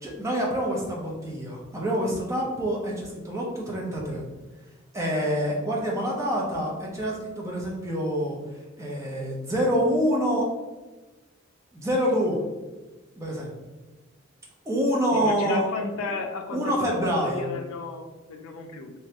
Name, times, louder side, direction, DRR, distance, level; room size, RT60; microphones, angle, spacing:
voice 1, 0.0-4.2 4.9-8.4 8.8-10.5 11.7-12.4 13.2-13.6 14.6-15.7 16.5-17.5, equal, 15° right, -3 dB, 0.6 m, -26 dB
voice 2, 15.1-17.0 17.2-18.9, left 3 dB, 80° left, 4 dB, 0.4 m, -33 dB
3.0 x 2.2 x 2.8 m, 1.2 s
head